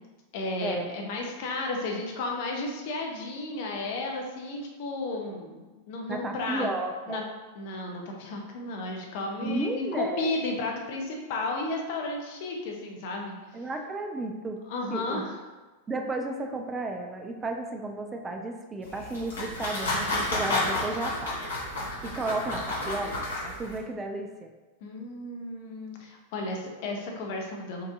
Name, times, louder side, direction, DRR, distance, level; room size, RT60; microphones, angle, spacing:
voice 1, 0.3-6.7 7.1-7.2 7.6-13.4 14.7-15.4 24.8-27.9, left 2 dB, 50° left, 1 dB, 0.7 m, -33 dB
voice 2, 6.1-7.2 9.4-10.3 13.5-14.6 14.9-15.2 15.9-21.5 21.7-24.5, right 2 dB, 20° right, 4 dB, 0.4 m, -33 dB
sound 1, 18.8-23.8, left 2 dB, 70° left, 1.2 m, -31 dB
4.7 x 2.7 x 3.5 m, 1.2 s
figure-of-eight pair, 90°, 0 cm